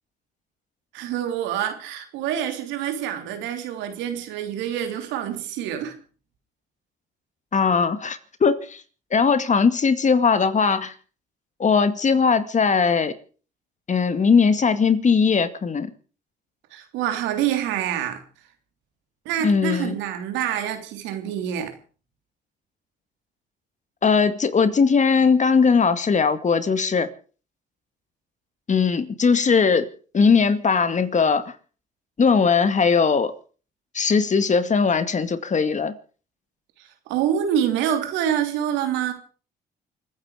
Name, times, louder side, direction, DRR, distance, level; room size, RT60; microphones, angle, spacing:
voice 1, 0.9-5.9 16.7-18.2 19.2-21.7 36.8-39.1, right 10 dB, 90° right, 3.3 m, -26 dB
voice 2, 7.5-8.8 9.1-10.9 11.6-13.1 13.9-15.9 19.4-19.9 24.0-27.1 28.7-31.5 32.2-33.3 33.9-35.9, left 5 dB, 40° left, 2.1 m, -19 dB
28.5 x 9.9 x 5.0 m
supercardioid pair, 70°, 19 cm